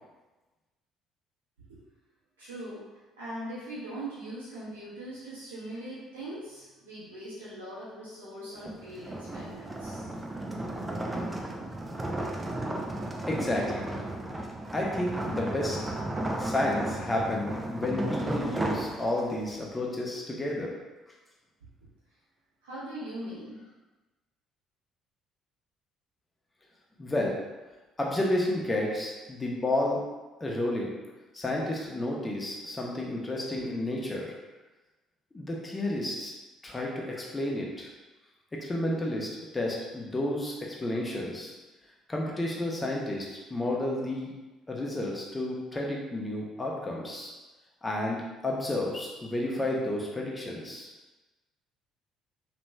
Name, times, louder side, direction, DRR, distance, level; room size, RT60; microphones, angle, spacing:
voice 1, 2.4-10.0 22.6-23.6, right 1 dB, 85° right, -11 dB, 1.0 m, -41 dB
sound 1, 8.6-19.5, right 1 dB, 15° right, 0.5 m, -34 dB
voice 2, 13.3-13.9 14.7-15.8 16.4-20.7 27.0-27.4 28.0-30.0 30.4-31.0 31.3-34.4 35.3-36.3 36.6-37.9 38.5-41.5 42.1-44.3 44.7-47.3 47.8-50.9, left 1 dB, 20° left, -2 dB, 0.8 m, -31 dB
3.0 x 2.9 x 2.2 m, 1.2 s
hypercardioid pair, 50°, 0 cm